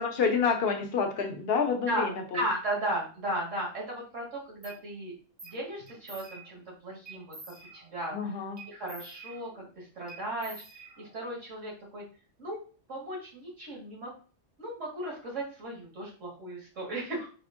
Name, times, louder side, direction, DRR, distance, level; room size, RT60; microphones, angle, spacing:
voice 1, 0.0-2.4 8.1-8.6, left 5 dB, 60° left, 4 dB, 0.9 m, -28 dB
voice 2, 2.3-5.2 5.4-7.3 7.7-8.3 8.7-12.0 12.4-12.6 12.9-14.1 14.6-17.3, right 1 dB, 85° right, -5 dB, 2.1 m, -36 dB
sound 1, 4.6-4.8 5.4-5.6 5.9-6.7 7.1-8.1 8.6-9.7 10.1-11.3, right 3 dB, 35° right, 0.7 m, -48 dB
4.9 x 2.6 x 2.5 m, 0.38 s
omnidirectional pair, 1.3 m